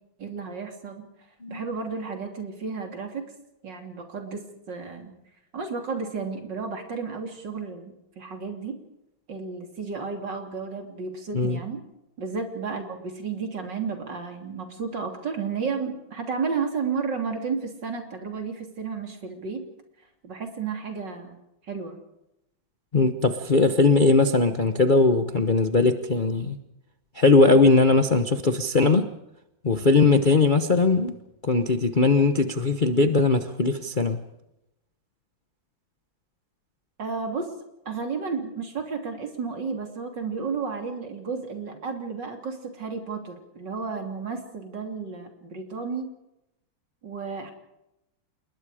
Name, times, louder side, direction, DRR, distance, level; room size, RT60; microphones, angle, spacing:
voice 1, 0.2-1.1 1.5-3.3 3.6-5.1 5.5-8.8 9.3-11.8 12.2-19.6 20.2-21.4 21.6-22.0 37.0-37.5 37.9-46.1 47.0-47.5, right 5 dB, 60° right, 4 dB, 3.7 m, -32 dB
voice 2, 22.9-26.6 27.1-29.1 29.6-31.1 31.4-34.2, left 3 dB, 35° left, 7 dB, 0.9 m, -20 dB
27.5 x 21.0 x 5.0 m, 0.87 s
omnidirectional pair, 2.2 m